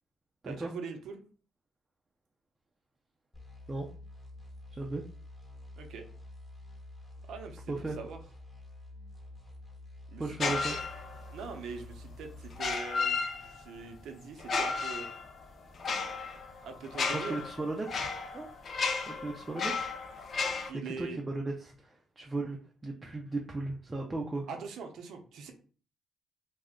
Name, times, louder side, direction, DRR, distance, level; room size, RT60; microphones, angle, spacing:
voice 1, 0.4-1.2 5.8-6.0 7.3-8.2 10.1-10.5 11.3-15.1 16.6-17.5 20.6-21.2 24.5-25.5, right 5 dB, 75° right, 4 dB, 0.6 m, -42 dB
sound 1, 3.3-12.8, left 2 dB, 15° left, 1.1 m, -49 dB
voice 2, 4.7-5.0 7.7-8.0 10.2-10.8 17.0-18.5 19.1-19.9 20.2-20.4 21.0-24.5, right 2 dB, 25° right, 1 dB, 0.4 m, -36 dB
sound 2, 10.4-11.4 12.5-13.8 14.4-20.7, left 4 dB, 50° left, 0.4 m, -34 dB
2.4 x 2.1 x 3.5 m, 0.40 s
cardioid pair, 90°, 0 cm